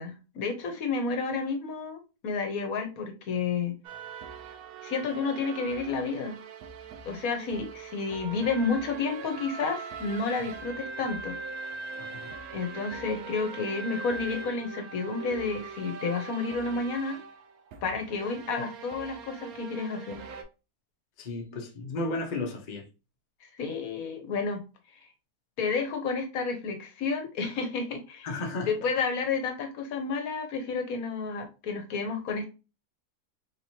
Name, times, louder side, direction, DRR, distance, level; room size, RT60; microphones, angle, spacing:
voice 1, 0.0-3.8 4.8-6.4 7.1-11.4 12.5-17.2 17.8-20.2 21.5-21.6 23.6-24.6 24.9-25.1 25.6-28.3 28.6-32.4, left 4 dB, 70° left, 1.2 m, -31 dB
sound 1, 3.8-20.4, right 5 dB, 75° right, 1.1 m, -41 dB
voice 2, 11.9-12.3 21.2-22.9 28.2-28.7, left 2 dB, 40° left, 0.7 m, -34 dB
3.6 x 2.9 x 2.7 m
omnidirectional pair, 1.6 m